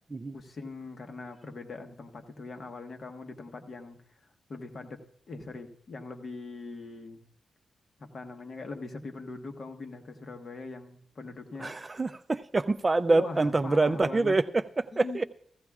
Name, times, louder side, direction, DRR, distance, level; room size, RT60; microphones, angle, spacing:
voice 1, 0.3-4.0 4.5-7.2 8.0-11.7 13.0-14.3 14.9-15.2, left 3 dB, 45° left, 1.2 m, -41 dB
voice 2, 11.6-15.2, right 3 dB, 25° right, 0.4 m, -26 dB
15.5 x 15.0 x 2.4 m
wide cardioid pair, 115°, 0 cm